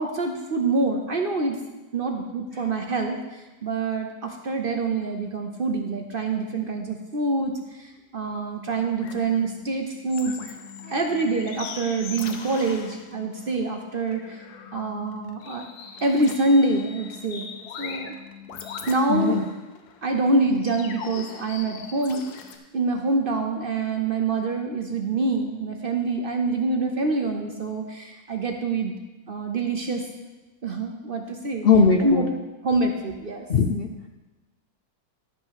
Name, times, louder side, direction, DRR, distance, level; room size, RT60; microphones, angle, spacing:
voice 1, 0.0-1.6 1.9-10.4 10.8-14.4 14.7-15.6 16.0-17.5 17.8-18.1 18.9-19.4 20.0-22.3 22.7-29.0 29.3-30.1 30.6-31.7 32.0-32.3 32.6-33.5, right 3 dB, 45° right, 4 dB, 0.8 m, -25 dB
sound 1, 8.2-22.6, left 6 dB, 90° left, 1.4 m, -41 dB
voice 2, 19.1-19.4 31.6-32.3 33.5-33.9, left 5 dB, 60° left, 4 dB, 0.6 m, -19 dB
11.5 x 5.6 x 5.7 m, 1.1 s
omnidirectional pair, 1.6 m